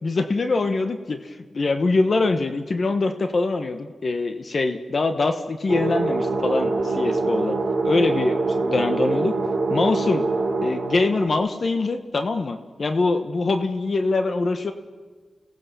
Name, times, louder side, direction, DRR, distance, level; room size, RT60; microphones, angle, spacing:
voice 1, 0.0-7.6 7.8-9.3 9.7-10.2 10.6-14.7, left 3 dB, 50° left, 8 dB, 1.2 m, -23 dB
sound 1, 5.7-11.3, right 3 dB, 50° right, 4.0 m, -24 dB
29.5 x 17.5 x 7.0 m, 1.4 s
wide cardioid pair, 90°, 0 cm